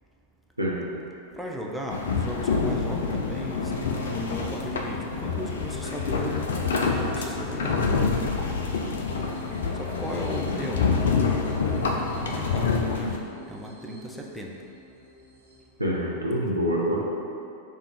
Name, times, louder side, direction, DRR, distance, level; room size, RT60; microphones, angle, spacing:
voice 1, 0.6-0.9 15.8-17.0, equal, 85° right, -4 dB, 0.6 m, -26 dB
voice 2, 1.3-6.5 6.8-8.1 9.7-10.9 12.1-14.6, equal, ahead, -2 dB, 0.4 m, -36 dB
sound 1, 1.9-13.2, left 4 dB, 65° left, 0.3 m, -27 dB
sound 2, 3.1-15.6, left 2 dB, 60° right, 1.2 m, -44 dB
3.5 x 2.4 x 4.3 m, 2.6 s
figure-of-eight pair, 90°, 0 cm